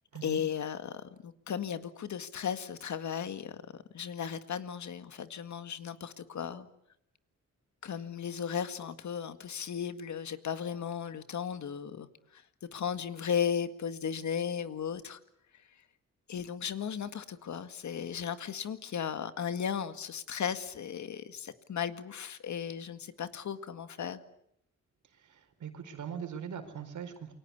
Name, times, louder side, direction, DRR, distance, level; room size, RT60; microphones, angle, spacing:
voice 1, 0.2-6.7 7.8-12.1 12.3-12.4 12.7-15.2 16.3-24.2, left 8 dB, 70° left, 10 dB, 2.0 m, -36 dB
voice 2, 25.2-27.3, right 7 dB, 90° right, 8 dB, 4.6 m, -41 dB
28.5 x 23.5 x 8.4 m, 0.75 s
cardioid pair, 100°, 29 cm